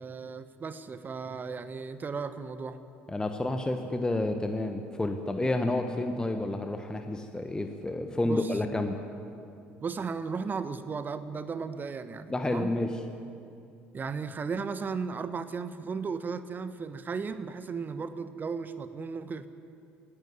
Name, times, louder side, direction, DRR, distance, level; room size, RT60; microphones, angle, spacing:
voice 1, 0.0-2.8 8.2-8.5 9.8-12.8 13.9-19.5, right 5 dB, 30° right, 12 dB, 1.1 m, -35 dB
voice 2, 3.1-9.0 12.3-12.9, left 2 dB, 10° left, 6 dB, 1.3 m, -30 dB
19.0 x 15.0 x 9.5 m, 2.5 s
figure-of-eight pair, 60°, 6 cm